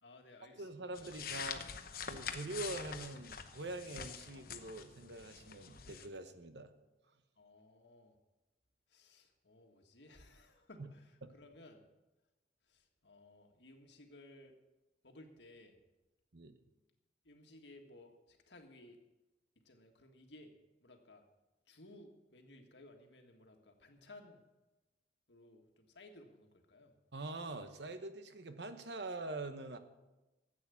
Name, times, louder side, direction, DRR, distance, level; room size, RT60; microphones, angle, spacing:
voice 1, 0.0-0.7 1.1-1.2 7.3-8.2 8.9-11.9 12.7-14.5 15.0-15.7 17.2-19.0 19.6-20.5 20.8-21.2 21.7-24.4 25.3-26.9, left 2 dB, 80° left, 4 dB, 1.8 m, -58 dB
voice 2, 0.6-1.6 2.1-6.7 10.8-10.9 11.2-11.3 16.3-16.6 27.1-29.8, right 2 dB, 70° right, 9 dB, 1.1 m, -44 dB
sound 1, 1.0-6.1, left 7 dB, 55° left, 0.9 m, -45 dB
13.0 x 8.6 x 7.0 m, 1.1 s
head